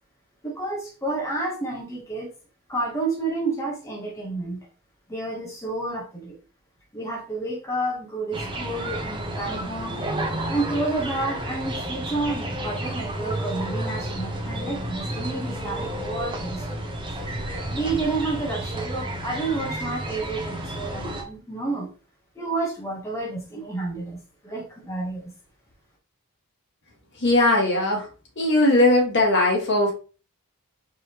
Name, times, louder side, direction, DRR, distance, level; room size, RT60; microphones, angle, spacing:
voice 1, 0.4-2.3 2.7-4.6 5.1-6.4 6.9-10.0 10.5-16.9 17.7-21.9 22.3-25.3, right 2 dB, 15° left, -3 dB, 0.9 m, -30 dB
sound 1, 8.3-21.2, right 1 dB, 25° right, 0.8 m, -31 dB
voice 2, 27.2-28.1 28.3-29.9, left 2 dB, 55° left, -1 dB, 1.6 m, -19 dB
4.6 x 3.2 x 2.9 m, 0.36 s
head